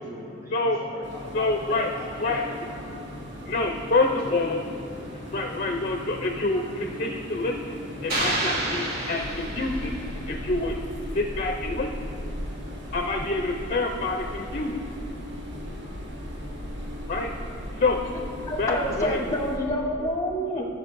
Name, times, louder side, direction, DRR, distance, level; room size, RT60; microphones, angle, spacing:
voice 1, 0.0-2.8 4.0-4.8, equal, 20° right, -6 dB, 1.0 m, -40 dB
voice 2, 0.5-0.8 1.3-1.9 2.2-2.4 3.2-4.6 5.3-12.5 12.8-19.2, left 3 dB, 45° left, 3 dB, 0.5 m, -28 dB
sound 1, 1.0-19.6, left 1 dB, 75° right, 1.5 m, -40 dB
sound 2, 8.1-10.3, right 1 dB, 55° right, 1.3 m, -29 dB
sound 3, 9.2-20.1, equal, 40° right, 0.6 m, -38 dB
voice 3, 18.4-20.7, equal, 15° left, 0 dB, 1.0 m, -27 dB
16.5 x 5.5 x 2.6 m, 2.5 s
head